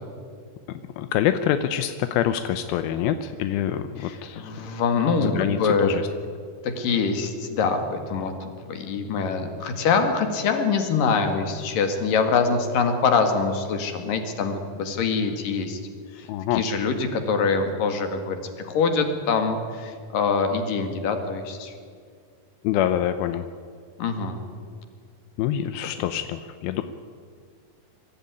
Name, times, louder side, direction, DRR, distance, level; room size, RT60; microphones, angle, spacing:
voice 1, 1.0-4.5 5.2-6.0 16.3-16.6 22.6-23.5 25.4-26.8, left 11 dB, 80° left, 9 dB, 2.3 m, -25 dB
voice 2, 4.0-6.0 6.6-15.8 16.1-21.7 24.0-24.4, left 5 dB, 55° left, 6 dB, 3.3 m, -24 dB
24.5 x 14.0 x 9.5 m, 2.1 s
omnidirectional pair, 5.0 m